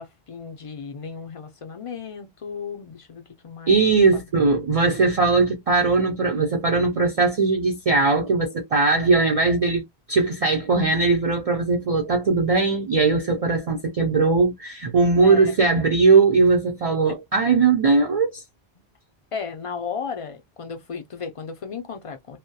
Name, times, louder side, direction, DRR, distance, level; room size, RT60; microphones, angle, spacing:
voice 1, 0.0-3.8 4.1-4.8 15.2-15.8 17.1-17.2 18.7-18.8 19.3-22.4, left 6 dB, 50° left, 0.4 m, -35 dB
voice 2, 3.7-9.8 10.1-18.4, right 4 dB, 50° right, 0.4 m, -19 dB
2.2 x 2.1 x 2.6 m
omnidirectional pair, 1.1 m